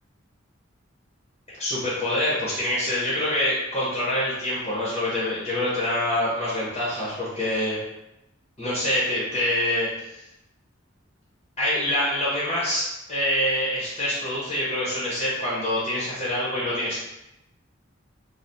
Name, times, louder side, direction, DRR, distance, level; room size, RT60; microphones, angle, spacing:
voice 1, 1.5-7.8 8.6-10.2 11.6-17.0, left 1 dB, 30° left, -8 dB, 0.9 m, -26 dB
2.7 x 2.3 x 3.3 m, 0.91 s
head